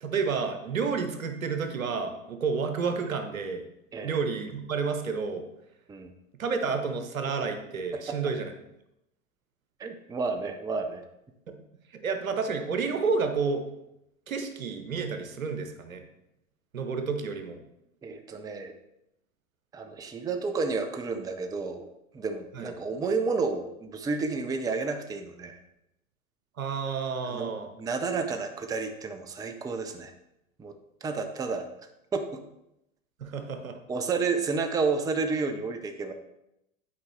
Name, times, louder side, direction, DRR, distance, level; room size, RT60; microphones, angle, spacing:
voice 1, 0.0-3.6 4.0-5.4 6.4-8.5 11.9-13.7 14.3-16.0 16.7-17.6 22.6-22.7 26.6-27.7 33.2-33.8, right 5 dB, 85° right, 6 dB, 0.9 m, -30 dB
voice 2, 9.8-11.0 18.0-18.7 19.7-25.6 27.2-30.1 30.6-30.7 31.0-32.4 33.9-36.1, right 4 dB, 10° right, 7 dB, 0.5 m, -31 dB
8.4 x 4.7 x 3.2 m, 0.84 s
hypercardioid pair, 85°, 40 cm